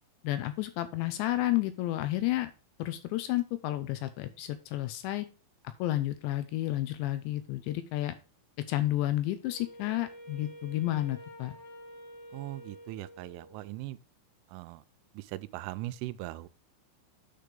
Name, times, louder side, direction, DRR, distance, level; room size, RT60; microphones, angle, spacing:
voice 1, 0.2-2.5 2.8-5.3 5.8-8.2 8.7-11.6, left 15 dB, 80° left, 2.8 m, -31 dB
Wind instrument woodwind instrument, 9.4-13.8, equal, 5° left, 2.1 m, -49 dB
voice 2, 12.3-14.0 14.5-14.8 15.1-16.5, right 17 dB, 85° right, 3.0 m, -39 dB
9.2 x 4.8 x 5.2 m
omnidirectional pair, 5.5 m